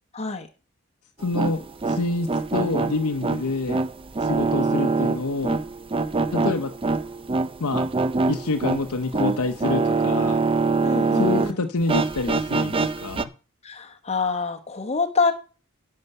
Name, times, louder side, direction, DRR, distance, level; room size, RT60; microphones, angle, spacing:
voice 1, 0.1-0.5 10.8-11.6 13.6-15.3, left 4 dB, 30° left, 5 dB, 1.2 m, -26 dB
voice 2, 1.2-3.8 4.2-5.6 6.3-6.7 7.6-7.9 8.3-10.4 11.1-13.3, left 3 dB, 85° left, 6 dB, 0.8 m, -27 dB
sound 1, 1.2-11.5 11.8-13.2, right 3 dB, 25° right, 0.5 m, -24 dB
11.0 x 5.7 x 6.7 m, 0.35 s
head